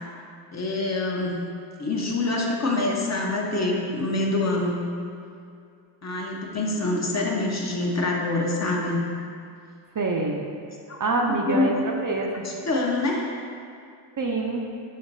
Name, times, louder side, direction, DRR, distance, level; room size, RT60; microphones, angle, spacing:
voice 1, 0.5-1.4 1.8-4.8 6.0-9.0 10.9-11.0 11.3-11.8 12.4-13.3, left 2 dB, 35° left, -2 dB, 0.8 m, -25 dB
voice 2, 9.9-10.4 11.0-12.4 14.2-14.6, right 3 dB, 40° right, 0 dB, 0.6 m, -25 dB
6.4 x 2.8 x 2.7 m, 2.4 s
supercardioid pair, 40°, 50 cm